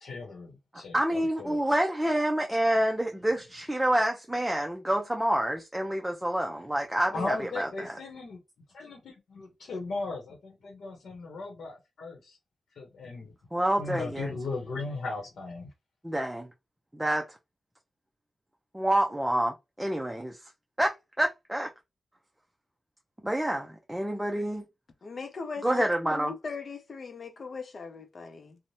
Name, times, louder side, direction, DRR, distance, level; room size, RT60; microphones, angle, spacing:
voice 1, 0.0-1.6 7.1-8.4 8.7-12.4 12.8-13.3 13.8-15.7, left 3 dB, 85° left, 0.8 m, -37 dB
voice 2, 0.9-8.0 13.5-14.3 16.0-16.5 16.9-17.4 18.7-20.4 20.8-21.7 23.2-24.6 25.6-26.3, right 1 dB, 10° right, 0.5 m, -28 dB
voice 3, 25.0-25.9 26.1-28.6, left 4 dB, 55° left, 0.5 m, -39 dB
3.1 x 2.1 x 2.7 m
cardioid pair, 80°, 0 cm